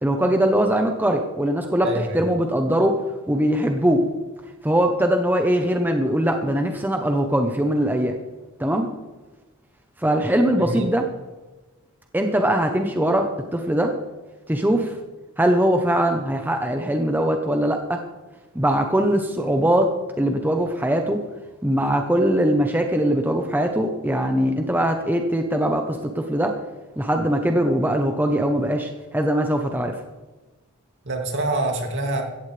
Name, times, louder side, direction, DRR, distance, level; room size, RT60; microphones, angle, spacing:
voice 1, 0.0-1.9 2.1-3.0 3.3-4.0 4.6-8.1 8.6-8.9 10.0-11.0 12.1-13.9 14.5-14.9 15.4-18.0 18.5-19.9 20.2-21.2 21.6-26.5 27.0-29.9, right 1 dB, 10° right, 4 dB, 0.8 m, -21 dB
voice 2, 1.8-2.2 10.6-10.9 31.0-32.2, right 2 dB, 55° right, 2 dB, 2.5 m, -25 dB
16.0 x 14.5 x 3.3 m, 1.2 s
head